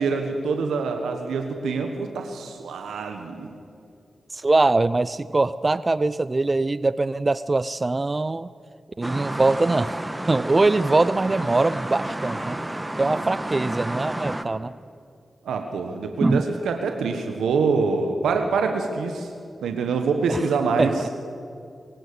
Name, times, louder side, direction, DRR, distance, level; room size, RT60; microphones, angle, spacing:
voice 1, 0.0-3.5 15.4-19.3 19.6-20.9, right 4 dB, 90° right, 5 dB, 1.3 m, -25 dB
voice 2, 4.3-8.5 9.0-10.0 10.3-12.6 13.0-14.7 16.2-16.4 20.3-20.4 20.8-21.1, right 2 dB, 35° right, 16 dB, 0.5 m, -22 dB
Busy Passing Cars, 9.0-14.4, right 1 dB, 15° right, 1.5 m, -31 dB
23.0 x 16.5 x 6.9 m, 2.4 s
supercardioid pair, 40°, 0 cm